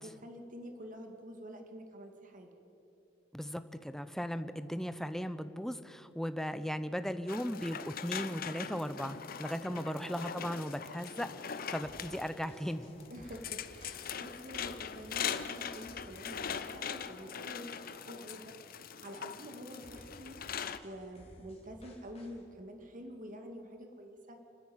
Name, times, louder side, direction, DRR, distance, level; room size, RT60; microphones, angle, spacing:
voice 1, 0.0-2.5 9.7-10.0 13.1-18.5 19.0-20.4 20.8-24.4, equal, 45° right, 4 dB, 2.2 m, -48 dB
voice 2, 3.3-12.9, equal, ahead, 11 dB, 0.7 m, -37 dB
sound 1, 7.3-20.8, left 7 dB, 50° left, 0.7 m, -41 dB
sound 2, 11.8-18.8 19.2-19.4 19.8-22.4, left 1 dB, 35° left, 3.4 m, -57 dB
30.0 x 10.0 x 8.9 m, 2.9 s
head